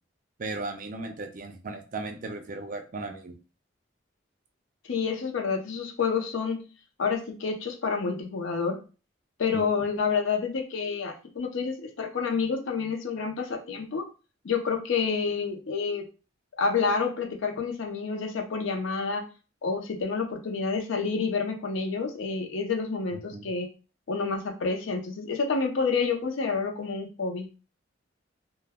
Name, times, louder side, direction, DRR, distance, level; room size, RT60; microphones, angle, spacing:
voice 1, 0.4-3.4 9.5-9.7 23.3-23.5, right 3 dB, 45° right, 5 dB, 0.4 m, -36 dB
voice 2, 4.9-6.7 7.0-8.8 9.4-14.1 14.4-16.0 16.6-19.2 19.6-23.7 24.1-27.5, left 5 dB, 80° left, 4 dB, 0.5 m, -28 dB
2.2 x 2.1 x 3.4 m, 0.34 s
head